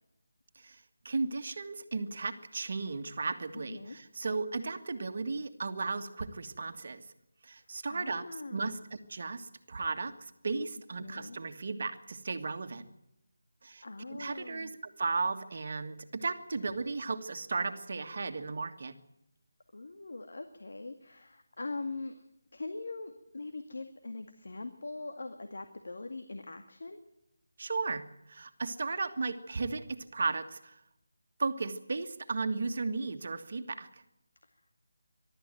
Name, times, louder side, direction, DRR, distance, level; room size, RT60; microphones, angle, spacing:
voice 1, 0.6-7.1 7.4-12.8 13.6-18.9 27.6-30.8 31.4-34.0, right 3 dB, 55° right, 8 dB, 1.8 m, -35 dB
voice 2, 3.5-4.0 7.9-8.8 11.0-11.4 13.8-14.7 19.7-22.2 22.5-27.0, left 3 dB, 70° left, 6 dB, 2.0 m, -42 dB
22.5 x 13.0 x 9.3 m, 0.85 s
figure-of-eight pair, 165°, 0 cm